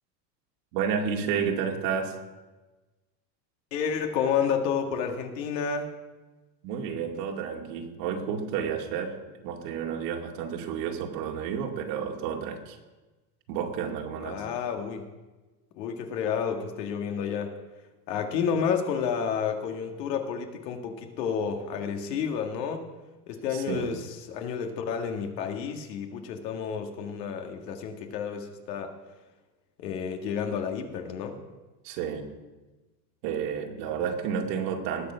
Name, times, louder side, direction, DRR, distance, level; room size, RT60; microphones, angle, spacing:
voice 1, 0.7-2.2 6.6-9.2 9.4-12.8 13.5-14.4 23.5-23.9 31.8-32.3 33.2-35.1, right 7 dB, 70° right, 1 dB, 2.4 m, -31 dB
voice 2, 3.7-5.9 14.2-15.1 15.8-17.5 18.1-22.9 23.3-28.9 29.8-31.4, left 7 dB, 80° left, 4 dB, 1.9 m, -30 dB
19.0 x 6.8 x 5.6 m, 1.2 s
supercardioid pair, 115°, 49 cm